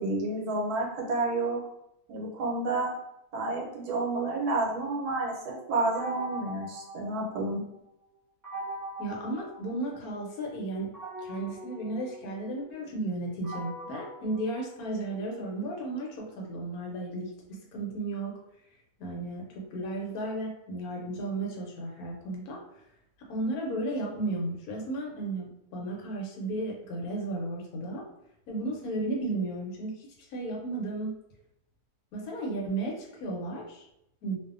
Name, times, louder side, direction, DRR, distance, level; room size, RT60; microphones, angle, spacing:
voice 1, 0.0-1.6 2.1-2.9 3.3-7.6, right 2 dB, 80° right, 0 dB, 1.2 m, -30 dB
sound 1, 5.9-7.7 8.4-10.2 10.9-15.2, right 1 dB, 10° right, 1.3 m, -42 dB
voice 2, 9.0-10.9 11.2-17.3 17.7-18.4 19.0-22.6 23.3-28.0 28.5-31.1 32.1-33.9 34.2-34.4, right 2 dB, 75° left, -1 dB, 1.1 m, -34 dB
2.6 x 2.3 x 2.4 m, 0.80 s
omnidirectional pair, 1.6 m